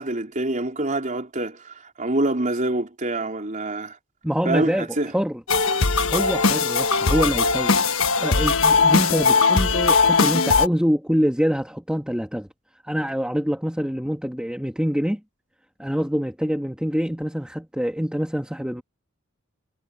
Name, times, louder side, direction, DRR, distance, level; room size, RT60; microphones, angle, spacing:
voice 1, 0.0-4.0 4.5-5.1, right 2 dB, 40° right, 4.0 m, -26 dB
voice 2, 4.2-5.4 6.1-7.8 8.2-12.5 12.8-15.2 15.8-18.8, equal, 5° right, 2.1 m, -25 dB
sound 1, 5.5-10.7, left 4 dB, 80° left, 1.3 m, -19 dB
head